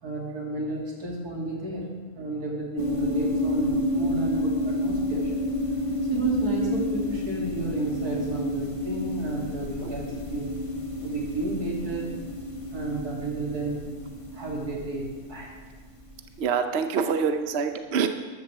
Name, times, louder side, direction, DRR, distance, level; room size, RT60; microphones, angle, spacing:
voice 1, 0.0-1.9 2.1-5.5 6.1-10.5 11.0-12.1 12.7-13.8 14.3-15.5, right 2 dB, 85° right, -3 dB, 3.4 m, -32 dB
sound 1, 2.8-16.2, left 1 dB, 20° left, 1.4 m, -30 dB
voice 2, 16.4-18.1, right 6 dB, 55° right, 7 dB, 0.9 m, -26 dB
13.5 x 13.0 x 3.6 m, 1.4 s
omnidirectional pair, 1.6 m